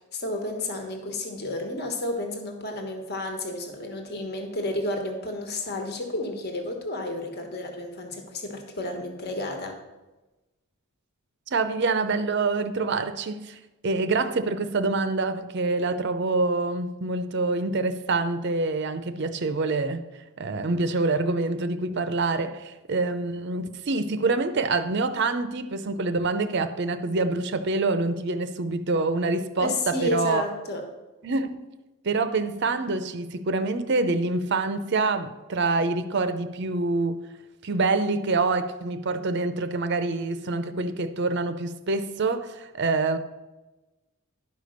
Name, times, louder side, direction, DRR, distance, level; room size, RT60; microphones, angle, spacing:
voice 1, 0.1-9.8 29.6-30.8, left 2 dB, 45° left, 1.4 m, -31 dB
voice 2, 11.5-20.1 20.4-30.4 31.2-31.6 32.0-37.3 37.6-43.2, right 3 dB, 50° right, 0.6 m, -26 dB
11.0 x 5.1 x 6.5 m
head